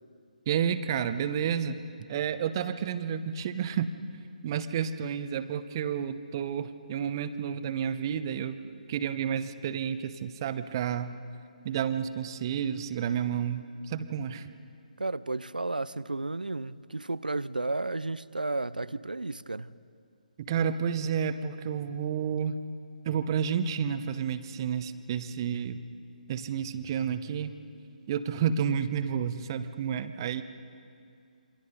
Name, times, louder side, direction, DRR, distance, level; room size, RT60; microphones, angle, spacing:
voice 1, 0.5-1.8 2.1-3.9 4.4-8.6 8.9-11.1 11.6-14.5 20.4-22.6 23.0-25.8 26.3-27.5 28.1-30.4, right 8 dB, 30° right, 1.0 m, -30 dB
voice 2, 15.0-19.7, right 2 dB, 80° right, 0.6 m, -33 dB
27.5 x 24.5 x 5.3 m
figure-of-eight pair, 140°, 5 cm